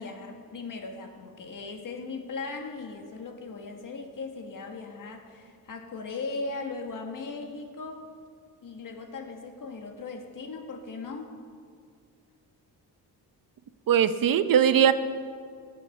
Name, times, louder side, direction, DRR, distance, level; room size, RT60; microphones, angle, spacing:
voice 1, 0.0-8.1 8.6-11.4, left 3 dB, 55° left, 4 dB, 1.7 m, -38 dB
voice 2, 13.9-14.9, right 9 dB, 60° right, 12 dB, 0.7 m, -20 dB
16.0 x 7.0 x 5.7 m, 2.1 s
cardioid pair, 75°, 39 cm